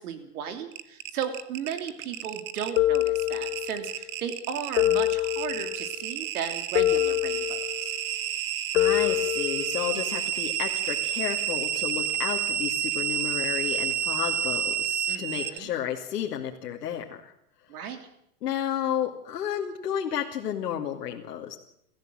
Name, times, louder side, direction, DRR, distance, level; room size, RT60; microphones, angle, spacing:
voice 1, 0.0-7.9 15.1-15.7 17.7-18.1, right 7 dB, 70° right, 8 dB, 3.0 m, -35 dB
sound 1, 0.7-15.6, right 10 dB, 20° right, 0.8 m, -30 dB
sound 2, 2.8-3.9 4.8-5.9 6.8-7.9 8.8-9.9, left 15 dB, 70° left, 1.0 m, -25 dB
voice 2, 8.7-17.3 18.4-21.6, left 9 dB, 90° left, 1 dB, 2.5 m, -32 dB
25.0 x 14.5 x 7.6 m, 0.76 s
supercardioid pair, 155°, 46 cm